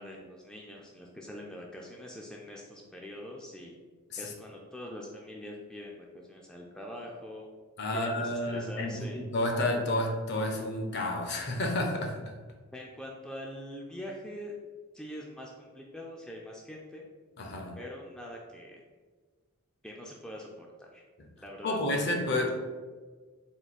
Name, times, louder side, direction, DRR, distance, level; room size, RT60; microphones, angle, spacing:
voice 1, 0.0-3.8 4.2-7.5 7.9-9.2 12.7-14.6 14.9-17.1 17.8-18.8 19.8-21.0 21.4-21.8, left 1 dB, 5° left, -2 dB, 0.3 m, -44 dB
voice 2, 7.8-12.3 17.4-17.7 21.6-22.5, left 1 dB, 55° left, 2 dB, 0.7 m, -30 dB
3.7 x 2.6 x 4.1 m, 1.4 s
head